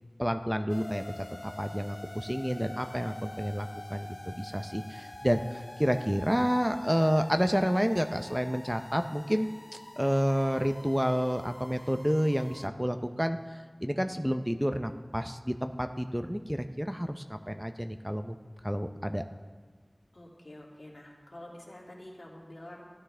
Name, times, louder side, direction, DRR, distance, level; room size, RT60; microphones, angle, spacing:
voice 1, 0.2-1.1 1.4-9.5 10.0-18.4 18.6-19.2, equal, 5° right, 7 dB, 0.5 m, -29 dB
sound 1, 0.7-12.7, left 1 dB, 65° left, 0.5 m, -46 dB
voice 2, 20.1-22.8, left 1 dB, 80° left, -3 dB, 2.3 m, -47 dB
16.0 x 11.5 x 3.3 m, 1.5 s
wide cardioid pair, 40°, 0 cm